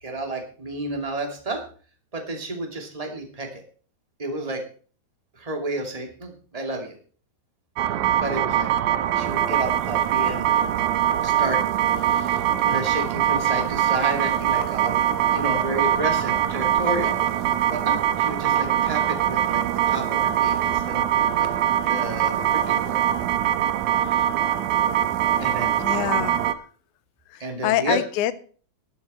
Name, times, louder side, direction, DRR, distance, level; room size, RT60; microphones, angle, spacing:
voice 1, 0.0-1.6 2.1-3.6 4.2-4.6 5.3-7.0 8.2-8.7 9.2-10.6 11.2-11.6 12.0-15.0 15.3-17.2 17.7-21.5 21.9-23.0 25.4-26.1 27.4-28.0, right 2 dB, 15° right, 2.3 m, -31 dB
sound 1, 7.8-26.5, right 10 dB, 80° right, 2.2 m, -23 dB
voice 2, 25.8-26.5 27.3-28.4, left 13 dB, 80° left, 2.2 m, -26 dB
13.0 x 12.0 x 4.3 m
omnidirectional pair, 3.5 m